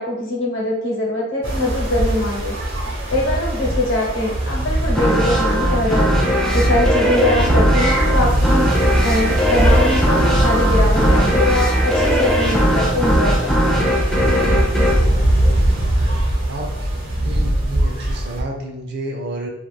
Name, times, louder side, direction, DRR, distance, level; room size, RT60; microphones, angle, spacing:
voice 1, 0.0-2.5 3.1-8.7 9.0-13.9, left 1 dB, 65° left, -1 dB, 0.9 m, -22 dB
sound 1, 1.4-18.4, right 1 dB, 75° right, 0.9 m, -21 dB
sound 2, 5.0-16.1, equal, 5° left, 0.4 m, -19 dB
voice 2, 17.2-19.5, right 1 dB, 55° right, 2 dB, 0.5 m, -30 dB
2.4 x 2.3 x 3.1 m, 0.84 s
head